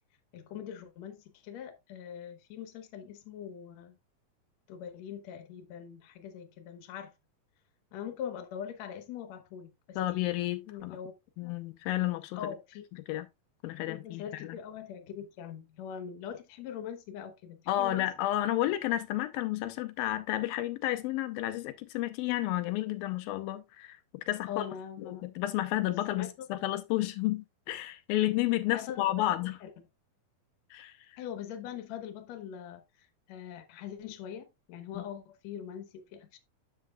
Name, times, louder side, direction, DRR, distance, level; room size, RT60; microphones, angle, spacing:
voice 1, 0.3-4.0 4.7-7.1 7.9-10.4 10.7-11.1 11.4-11.5 12.3-12.8 13.9-18.1 24.5-25.3 26.1-26.3 28.7-29.0 29.6-29.7 31.2-36.4, left 9 dB, 60° left, 2.1 m, -42 dB
voice 2, 10.0-11.0 11.4-12.4 13.1-13.3 13.6-14.6 17.7-24.6 25.0-29.6 30.7-30.9 34.9-35.0, left 15 dB, 90° left, 2.5 m, -31 dB
9.5 x 7.4 x 2.3 m
omnidirectional pair, 4.2 m